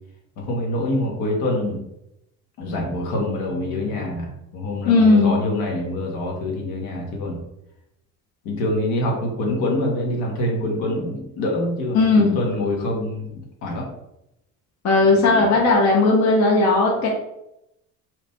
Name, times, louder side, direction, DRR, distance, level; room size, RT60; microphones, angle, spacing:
voice 1, 0.4-1.8 2.6-7.4 8.4-13.9 15.2-15.5, left 1 dB, 70° left, -1 dB, 1.2 m, -25 dB
voice 2, 4.8-5.4 11.9-12.4 14.8-17.1, left 3 dB, 50° left, -2 dB, 0.8 m, -16 dB
2.9 x 2.5 x 3.5 m, 0.83 s
supercardioid pair, 75°, 36 cm